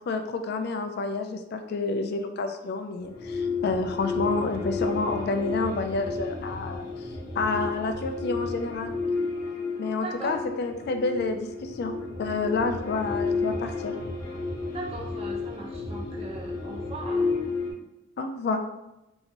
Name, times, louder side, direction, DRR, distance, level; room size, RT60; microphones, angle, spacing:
voice 1, 0.1-7.1 7.4-8.9 9.8-11.9 12.2-14.0 18.2-18.6, left 3 dB, 55° left, 7 dB, 0.3 m, -29 dB
sound 1, 3.0-17.7, left 3 dB, 20° left, 0.9 m, -32 dB
voice 2, 10.0-10.4 14.7-17.3, right 2 dB, 30° right, -2 dB, 0.8 m, -38 dB
4.2 x 2.7 x 2.9 m, 0.92 s
head